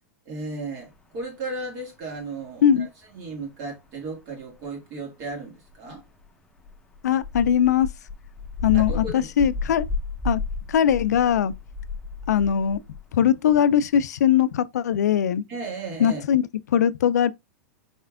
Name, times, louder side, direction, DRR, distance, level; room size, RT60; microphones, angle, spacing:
voice 1, 0.3-2.9 3.1-6.0 8.7-9.3 15.5-16.2, right 3 dB, 50° right, 2.1 m, -35 dB
sound 1, 0.9-1.0 4.5-4.6 5.7-6.3 6.6-13.1 13.5-13.6 14.2-14.3, left 3 dB, 10° left, 0.8 m, -32 dB
voice 2, 7.0-7.9 8.6-9.9 10.2-10.4 10.7-11.5 12.3-12.8 13.1-15.4 16.0-16.4 16.7-17.3, left 9 dB, 80° left, 0.4 m, -20 dB
4.3 x 3.3 x 2.3 m
hypercardioid pair, 110°, 9 cm